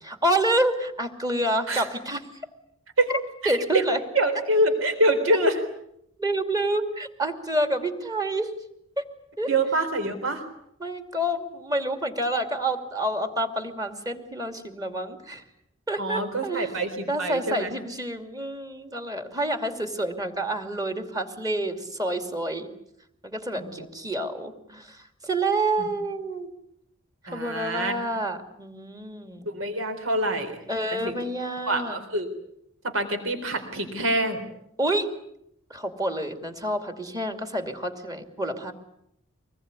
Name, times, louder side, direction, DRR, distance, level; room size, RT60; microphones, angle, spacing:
voice 1, 0.0-2.2 3.1-3.2 3.5-4.0 6.2-8.5 9.0-9.1 9.4-9.5 10.8-15.4 15.9-16.7 17.1-22.7 23.2-26.5 27.3-29.5 30.7-32.0 34.8-35.1 35.7-38.7, right 1 dB, 20° right, 7 dB, 2.7 m, -28 dB
voice 2, 3.4-3.8 4.1-5.6 9.5-10.4 16.0-17.7 23.6-23.9 27.3-27.9 29.5-30.6 30.9-31.2 31.7-32.3 32.8-34.4, right 1 dB, 70° right, 7 dB, 3.9 m, -25 dB
25.5 x 20.5 x 9.8 m, 0.76 s
head